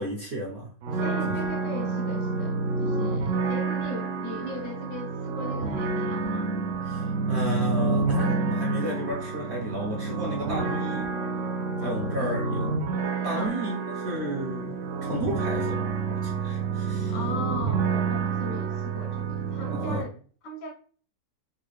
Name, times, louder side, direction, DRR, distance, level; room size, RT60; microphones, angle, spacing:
voice 1, 0.0-1.0 3.2-3.5 6.9-11.1 11.8-12.8 13.2-17.1 19.7-20.0, right 1 dB, 55° right, 0.7 m, -33 dB
sound 1, 0.8-20.0, right 4 dB, 90° right, 0.6 m, -28 dB
voice 2, 1.0-6.5 11.8-12.4 13.3-13.5 17.1-20.1 20.4-20.7, left 1 dB, 75° left, 1.4 m, -38 dB
3.9 x 2.3 x 3.1 m
omnidirectional pair, 1.9 m